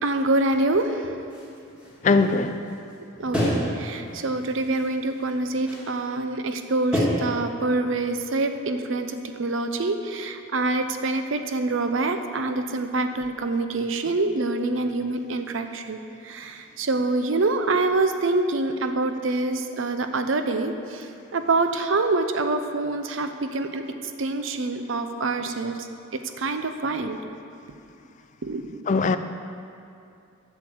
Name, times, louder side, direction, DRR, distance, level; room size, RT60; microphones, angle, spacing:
voice 1, 0.0-1.3 3.2-16.0 16.2-23.8 24.2-25.8 26.4-27.2 28.4-28.8, right 2 dB, 70° right, 0.6 m, -26 dB
sound 1, 1.3-2.9 3.3-3.8 4.1-5.3 5.6-6.0 6.9-7.0, equal, 5° right, 1.9 m, -30 dB
voice 2, 2.0-2.6 28.9-29.2, left 4 dB, 35° left, 0.3 m, -20 dB
8.1 x 6.5 x 7.7 m
head